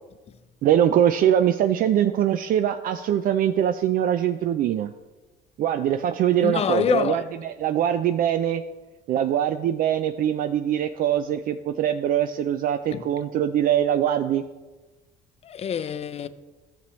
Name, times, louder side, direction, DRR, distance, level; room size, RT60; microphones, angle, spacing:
voice 1, 0.6-4.9 5.6-8.6 9.1-14.4, right 10 dB, 60° right, 0.4 m, -22 dB
voice 2, 6.4-7.2 12.9-13.0 15.4-16.3, left 8 dB, 40° left, 0.5 m, -26 dB
11.5 x 6.9 x 3.1 m
cardioid pair, 110°, 17 cm